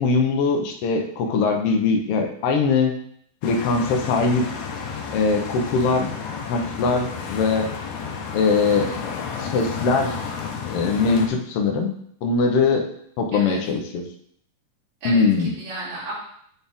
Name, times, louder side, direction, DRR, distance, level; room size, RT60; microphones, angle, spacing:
voice 1, 0.0-3.0 3.4-4.5 5.1-6.1 6.5-7.7 8.3-8.9 9.4-10.2 10.6-11.9 12.2-12.9 13.2-14.1 15.0-15.5, left 4 dB, 90° left, 3 dB, 1.3 m, -21 dB
sound 1, 3.4-11.3, left 6 dB, 70° left, 2.1 m, -32 dB
voice 2, 8.7-9.0 13.3-13.6 15.0-16.1, right 2 dB, 80° right, -9 dB, 4.5 m, -34 dB
9.3 x 4.3 x 3.6 m, 0.67 s
omnidirectional pair, 3.9 m